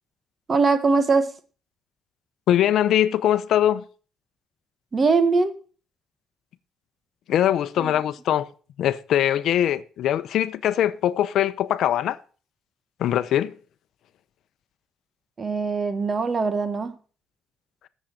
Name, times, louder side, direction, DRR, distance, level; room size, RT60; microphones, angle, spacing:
voice 1, 0.5-1.3 4.9-5.6 7.8-7.9 15.4-16.9, right 4 dB, 35° right, 1.4 m, -21 dB
voice 2, 2.5-3.8 7.3-8.5 8.8-12.2 13.0-13.5, left 11 dB, 75° left, 0.6 m, -22 dB
10.5 x 7.4 x 6.5 m
cardioid pair, 90°, 0 cm